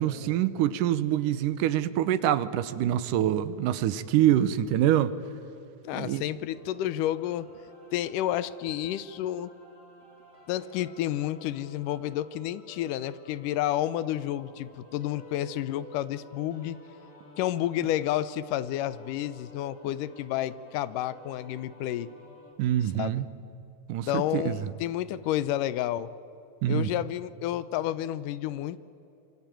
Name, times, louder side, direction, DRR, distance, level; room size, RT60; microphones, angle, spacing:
voice 1, 0.0-5.1 5.9-6.2 22.6-23.3 23.9-24.7 26.6-26.9, right 11 dB, 75° right, 2.4 m, -25 dB
voice 2, 5.8-7.5 7.9-9.5 10.5-16.8 17.4-22.1 23.0-23.2 24.1-26.1 26.7-28.8, left 12 dB, 75° left, 2.2 m, -30 dB
sound 1, 6.5-22.5, left 2 dB, 20° left, 4.3 m, -53 dB
27.0 x 24.0 x 9.1 m
omnidirectional pair, 4.0 m